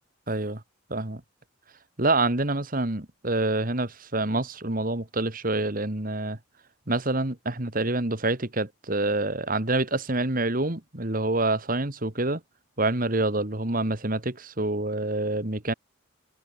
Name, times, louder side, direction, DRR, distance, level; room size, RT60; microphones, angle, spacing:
voice 1, 0.3-0.6 0.9-1.2 2.0-6.4 6.9-12.4 12.8-15.7, right 2 dB, 40° right, 2.1 m, -27 dB
open air
head